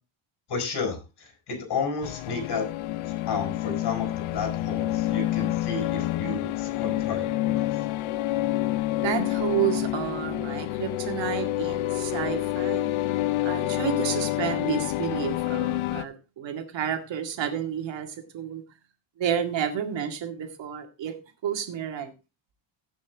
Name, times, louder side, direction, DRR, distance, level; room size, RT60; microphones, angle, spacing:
voice 1, 0.5-2.7 3.2-7.8, left 4 dB, 50° left, 4 dB, 5.1 m, -32 dB
sound 1, 2.0-16.1, left 15 dB, 75° left, 0.7 m, -28 dB
voice 2, 9.0-12.9 13.4-18.6 19.2-21.1 21.4-22.1, right 9 dB, 60° right, 5 dB, 2.2 m, -30 dB
16.5 x 6.1 x 3.5 m, 0.29 s
cardioid pair, 135°, 49 cm